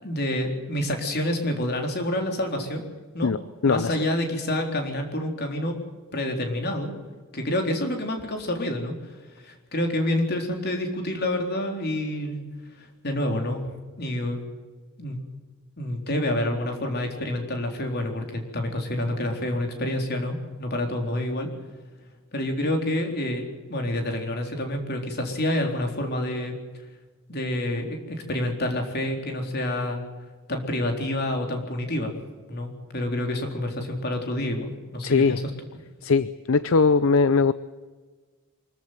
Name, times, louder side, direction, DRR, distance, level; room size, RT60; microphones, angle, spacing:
voice 1, 0.0-2.8 3.1-3.3 3.6-5.8 6.1-7.0 7.3-8.9 9.4-12.4 12.8-13.6 14.0-14.4 15.0-15.2 15.8-21.5 22.3-26.5 27.3-30.0 30.5-32.1 32.5-35.4, left 1 dB, 50° left, 3 dB, 4.0 m, -28 dB
voice 2, 3.2-4.0 35.0-35.4 36.0-37.5, left 4 dB, 70° left, 15 dB, 0.6 m, -21 dB
24.5 x 14.5 x 9.3 m, 1.4 s
head